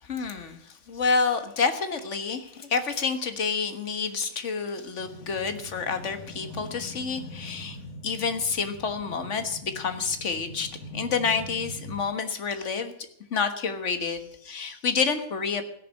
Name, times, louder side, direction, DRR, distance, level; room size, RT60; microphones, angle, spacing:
voice 1, 0.0-7.8 8.0-12.9 13.3-15.6, left 5 dB, 55° left, 9 dB, 1.7 m, -29 dB
sound 1, 5.0-12.0, equal, 70° left, 2.3 m, -42 dB
16.5 x 6.8 x 9.9 m, 0.69 s
omnidirectional pair, 1.5 m